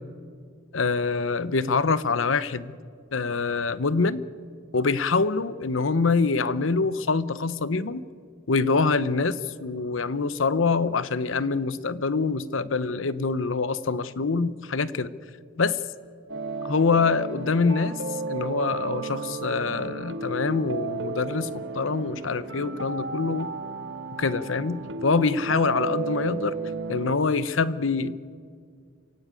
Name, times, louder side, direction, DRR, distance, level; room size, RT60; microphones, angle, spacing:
voice 1, 0.7-2.7 3.1-4.2 4.7-8.1 8.5-15.1 15.6-15.8 16.6-17.9 18.3-23.5 24.2-26.5 26.9-28.3, left 4 dB, 85° left, 15 dB, 0.9 m, -25 dB
sound 1, 16.3-27.2, right 3 dB, 65° right, 1.7 m, -33 dB
28.0 x 16.5 x 9.1 m, 2.1 s
head